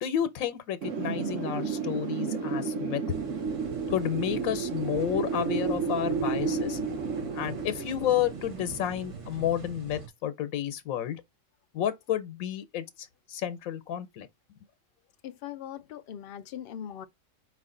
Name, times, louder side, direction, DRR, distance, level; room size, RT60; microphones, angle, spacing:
voice 1, 0.0-3.0 3.9-6.8 7.3-11.2 11.7-14.3, left 10 dB, 90° left, 1.1 m, -31 dB
Wind, 0.8-9.5, right 5 dB, 70° right, 1.3 m, -32 dB
sound 1, 3.1-10.1, right 4 dB, 35° right, 0.6 m, -43 dB
voice 2, 15.2-17.1, left 10 dB, 65° left, 0.6 m, -40 dB
4.9 x 2.4 x 3.6 m
omnidirectional pair, 1.4 m